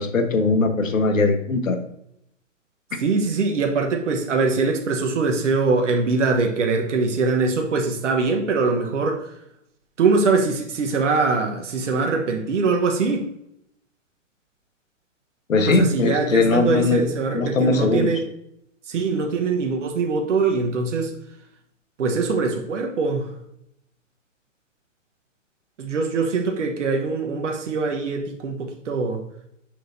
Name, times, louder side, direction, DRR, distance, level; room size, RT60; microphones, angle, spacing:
voice 1, 0.0-1.8 15.5-17.0 17.3-18.1, left 3 dB, 85° left, 7 dB, 1.2 m, -20 dB
voice 2, 3.0-9.3 10.0-13.2 15.7-18.3 18.9-21.1 22.0-23.3 25.8-29.2, right 4 dB, 65° right, 3 dB, 1.2 m, -22 dB
6.3 x 6.3 x 2.6 m, 0.77 s
hypercardioid pair, 135°, 39 cm